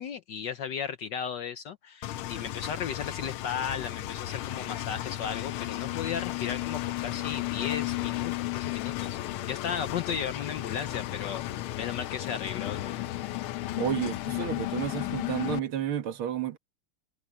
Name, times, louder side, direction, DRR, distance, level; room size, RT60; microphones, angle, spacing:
voice 1, 0.0-9.2 9.5-11.4 11.8-13.0, left 7 dB, 65° left, 1.3 m, -35 dB
Engine, 2.0-15.6, left 15 dB, 80° left, 1.5 m, -34 dB
voice 2, 13.8-16.6, right 10 dB, 75° right, 2.3 m, -31 dB
omnidirectional pair, 2.4 m